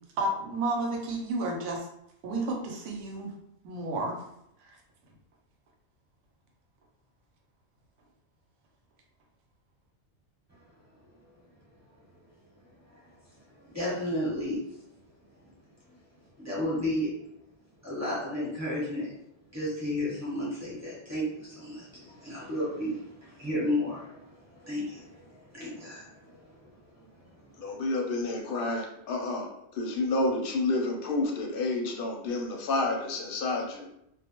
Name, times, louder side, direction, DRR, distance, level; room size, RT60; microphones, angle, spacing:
voice 1, 0.2-1.9 2.2-3.3 3.6-4.2 4.7-4.8, right 2 dB, 80° right, 1 dB, 0.9 m, -31 dB
voice 2, 13.5-14.8 15.4-15.5 16.4-17.2 17.8-19.2 19.5-27.7, left 1 dB, 15° right, -8 dB, 0.9 m, -33 dB
voice 3, 27.6-33.9, left 2 dB, 60° left, 1 dB, 0.6 m, -30 dB
2.2 x 2.0 x 2.8 m, 0.78 s
omnidirectional pair, 1.2 m